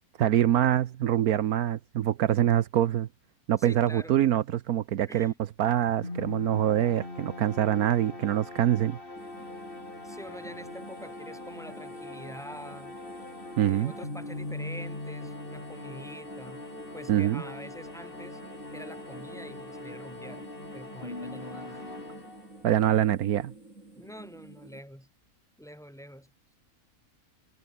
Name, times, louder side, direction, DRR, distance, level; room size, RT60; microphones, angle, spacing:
voice 1, 0.2-3.1 3.5-5.3 5.6-9.0 13.6-13.9 17.1-17.4 22.6-23.5, right 11 dB, 75° right, 1.3 m, -25 dB
voice 2, 3.6-4.2 5.0-5.4 10.0-13.0 13.7-16.6 16.9-18.4 18.7-20.5 20.7-21.8 23.9-25.1 25.6-26.3, equal, ahead, 7.6 m, -46 dB
sound 1, 6.0-22.8, left 2 dB, 35° left, 4.2 m, -41 dB
sound 2, 9.2-24.8, right 2 dB, 55° right, 5.9 m, -50 dB
omnidirectional pair, 1.6 m